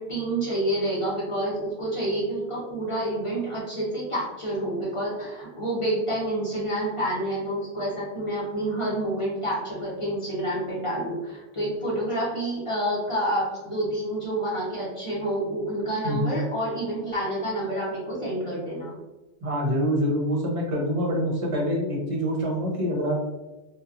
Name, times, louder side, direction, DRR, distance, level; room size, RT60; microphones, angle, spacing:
voice 1, 0.0-19.0, right 1 dB, 30° left, -7 dB, 0.7 m, -28 dB
voice 2, 16.0-16.4 19.4-23.2, equal, 35° right, -4 dB, 0.7 m, -25 dB
2.8 x 2.2 x 2.4 m, 1.1 s
omnidirectional pair, 1.1 m